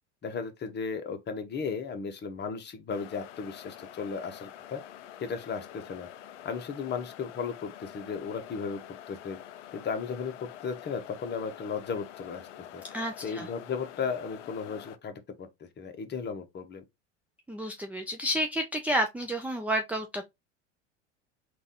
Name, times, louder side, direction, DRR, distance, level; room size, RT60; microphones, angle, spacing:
voice 1, 0.2-4.8 5.2-6.1 6.4-8.8 9.1-9.4 9.7-12.8 13.2-16.8, left 5 dB, 30° left, 1.0 m, -35 dB
sound 1, 2.9-15.0, left 11 dB, 75° left, 0.6 m, -47 dB
voice 2, 12.9-13.5 17.5-20.3, equal, 5° right, 0.4 m, -30 dB
3.9 x 2.5 x 3.6 m
hypercardioid pair, 90°, 36 cm